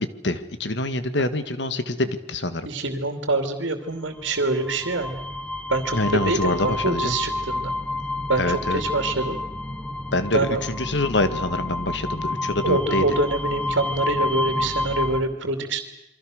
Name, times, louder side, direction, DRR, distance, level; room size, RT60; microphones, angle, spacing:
voice 1, 0.0-2.7 5.9-7.1 8.4-8.8 10.1-13.0, left 2 dB, 65° left, 11 dB, 1.8 m, -25 dB
voice 2, 2.6-5.2 5.7-7.7 8.3-9.4 10.3-10.6 12.6-15.8, right 2 dB, 85° right, 6 dB, 2.8 m, -25 dB
sound 1, 4.2-15.2, left 2 dB, 5° left, 1.4 m, -29 dB
28.0 x 24.0 x 6.6 m, 0.94 s
head